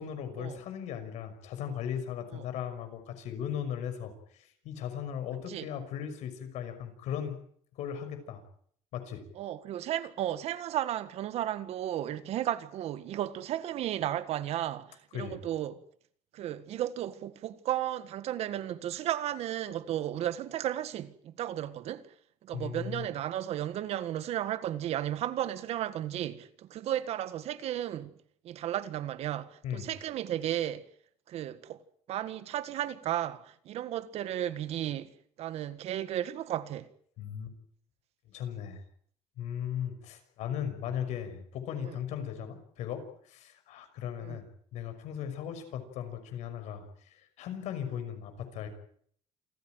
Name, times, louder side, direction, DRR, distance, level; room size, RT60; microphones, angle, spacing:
voice 1, 0.0-7.4 7.8-8.4 8.9-9.2 15.1-15.4 22.5-23.1 29.6-29.9 37.2-37.5 38.3-38.8 39.4-44.5 44.7-48.7, left 9 dB, 75° left, 5.8 m, -37 dB
voice 2, 9.3-15.8 16.3-22.1 22.4-28.1 28.4-30.8 31.3-31.8 32.1-35.1 35.4-36.9 41.8-42.0 44.2-44.4, right 12 dB, 60° right, 1.7 m, -34 dB
28.0 x 15.0 x 9.2 m
cardioid pair, 150°, 12 cm